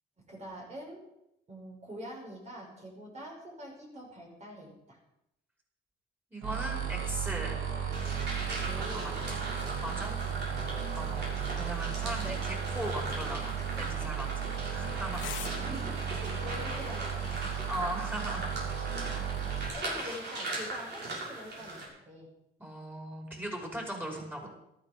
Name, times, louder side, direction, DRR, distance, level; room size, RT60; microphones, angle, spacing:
voice 1, 0.3-1.1 1.5-5.0 8.7-9.2 10.2-10.6 12.1-12.4 13.6-14.3 15.6-17.5 19.0-19.1 19.5-22.3, equal, 35° right, -1 dB, 5.8 m, -45 dB
voice 2, 6.3-7.6 8.8-9.4 9.8-10.1 11.0-15.3 17.7-18.5 19.1-19.3 22.6-24.5, right 1 dB, 10° right, 0 dB, 5.7 m, -39 dB
sound 1, 6.4-19.7, right 7 dB, 85° right, 2.8 m, -35 dB
sound 2, 7.9-21.9, right 2 dB, 60° right, 6.8 m, -40 dB
sound 3, 14.4-17.5, left 10 dB, 80° left, 1.6 m, -49 dB
14.0 x 13.0 x 5.3 m, 0.83 s
cardioid pair, 90°, 20 cm